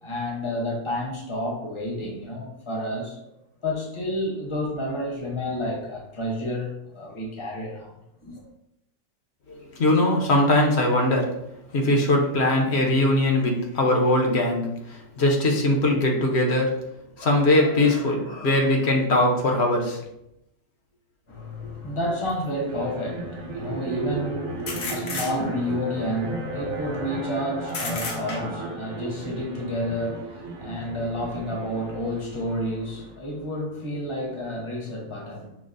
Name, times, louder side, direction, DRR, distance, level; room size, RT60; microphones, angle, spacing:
voice 1, 0.0-3.2 3.6-7.9 8.2-8.4 21.3-35.6, left 1 dB, 30° left, -1 dB, 0.7 m, -30 dB
voice 2, 9.5-11.3 11.7-16.8 17.2-20.0, left 1 dB, 60° left, 0 dB, 0.9 m, -21 dB
sound 1, 22.3-22.4 24.7-25.8 27.7-28.7, left 3 dB, 85° left, 1.2 m, -32 dB
sound 2, 22.7-33.1, right 2 dB, 85° right, 1.0 m, -35 dB
6.0 x 2.0 x 2.5 m, 0.82 s
omnidirectional pair, 1.4 m